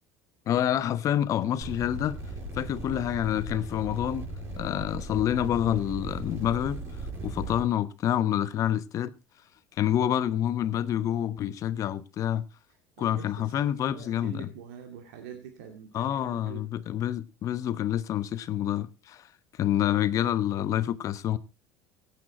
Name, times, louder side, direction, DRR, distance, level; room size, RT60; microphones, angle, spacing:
voice 1, 0.5-2.2 2.5-4.2 4.6-6.8 7.2-9.1 9.8-12.4 13.0-14.5 15.9-19.3 19.6-21.4, left 11 dB, 50° left, 1.0 m, -27 dB
sound 1, 1.6-7.6, right 2 dB, 35° right, 7.2 m, -38 dB
voice 2, 13.0-16.7, right 7 dB, 85° right, 2.3 m, -45 dB
16.5 x 8.7 x 4.3 m
supercardioid pair, 100°, 7 cm